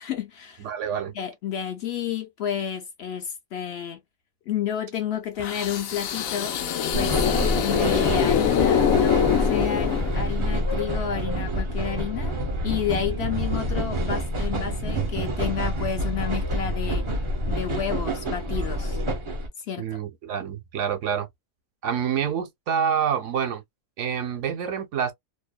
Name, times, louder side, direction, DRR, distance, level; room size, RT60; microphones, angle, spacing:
voice 1, 0.0-0.7 1.1-4.0 4.5-6.6 6.9-7.3 7.6-12.4 12.6-17.1 17.5-19.0 19.6-20.0, left 9 dB, 65° left, 0.7 m, -30 dB
voice 2, 0.6-1.1 19.8-21.3 21.8-23.6 24.0-25.1, right 8 dB, 70° right, 0.9 m, -27 dB
sound 1, 5.4-10.5, left 8 dB, 90° left, 1.0 m, -24 dB
sound 2, 6.9-19.5, equal, 40° right, 0.4 m, -27 dB
2.7 x 2.1 x 2.2 m
omnidirectional pair, 1.4 m